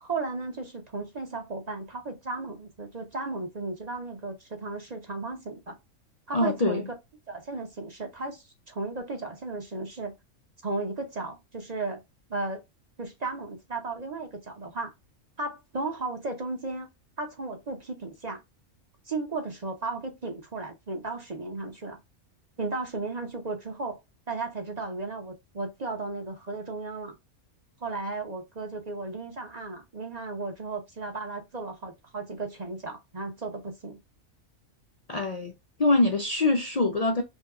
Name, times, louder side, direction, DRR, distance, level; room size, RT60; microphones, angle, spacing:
voice 1, 0.0-5.8 6.3-6.9 7.3-10.1 10.6-12.0 12.3-12.6 13.0-14.9 15.4-16.9 17.2-18.4 19.1-22.0 22.6-24.0 24.3-27.1 27.8-34.0, right 3 dB, 35° right, 0.8 m, -35 dB
voice 2, 6.3-6.9 35.1-35.5 35.8-37.2, left 2 dB, 55° left, 0.4 m, -24 dB
5.3 x 2.3 x 2.3 m
omnidirectional pair, 1.4 m